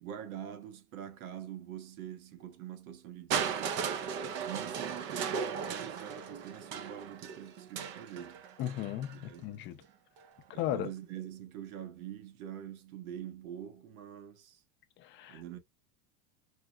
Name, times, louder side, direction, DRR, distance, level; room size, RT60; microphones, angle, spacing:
voice 1, 0.0-4.1 4.4-8.4 9.1-9.4 10.5-14.6 15.3-15.6, right 10 dB, 75° right, 1.0 m, -45 dB
Crushing, 3.3-9.2 10.2-10.3, right 7 dB, 30° right, 0.3 m, -36 dB
voice 2, 8.6-9.8 10.6-10.9 15.0-15.4, left 12 dB, 25° left, 0.5 m, -36 dB
4.8 x 2.0 x 2.2 m
supercardioid pair, 140°, 42 cm